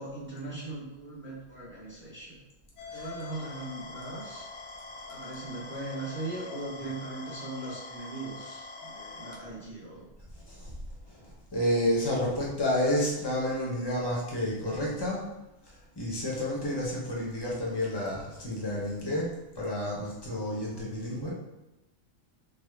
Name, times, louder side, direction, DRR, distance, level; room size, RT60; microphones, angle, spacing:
voice 1, 0.0-2.4 2.9-4.5 5.1-10.0, right 2 dB, 10° right, -7 dB, 0.6 m, -39 dB
sound 1, 2.8-9.4, left 3 dB, 70° left, 0.8 m, -44 dB
voice 2, 11.1-15.3 16.0-21.3, left 1 dB, 30° left, -4 dB, 0.5 m, -30 dB
3.4 x 2.0 x 3.3 m, 0.96 s
omnidirectional pair, 1.4 m